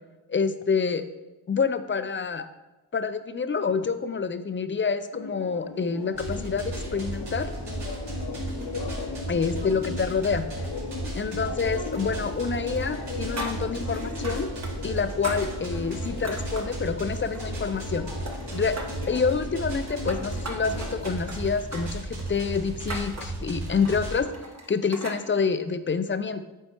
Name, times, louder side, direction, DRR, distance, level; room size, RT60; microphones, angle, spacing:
voice 1, 0.3-1.0 1.5-2.5 2.9-7.5 9.3-10.5 11.1-14.5 14.8-18.1 18.5-18.8 19.1-24.3 24.7-26.4, left 5 dB, 25° left, 11 dB, 0.5 m, -27 dB
sound 1, 5.1-21.2, left 4 dB, 65° left, 1.0 m, -38 dB
sound 2, 6.1-24.2, right 1 dB, 75° right, 2.1 m, -35 dB
sound 3, 11.9-12.5 12.7-14.7 15.0-16.8 17.2-18.0 18.3-19.1 19.7-25.2, right 1 dB, 35° right, 1.2 m, -39 dB
7.8 x 4.5 x 3.0 m, 1.1 s
supercardioid pair, 40°, 44 cm